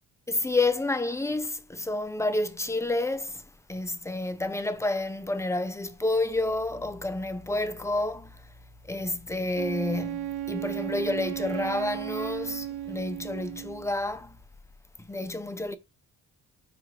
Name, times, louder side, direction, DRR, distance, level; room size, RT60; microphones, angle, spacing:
voice 1, 0.3-3.4 3.7-8.3 8.9-14.3 15.0-15.8, left 2 dB, 5° left, 0.5 m, -29 dB
Wind instrument woodwind instrument, 9.5-13.9, right 12 dB, 70° right, 0.5 m, -35 dB
4.4 x 2.8 x 3.7 m
supercardioid pair, 65°, 41 cm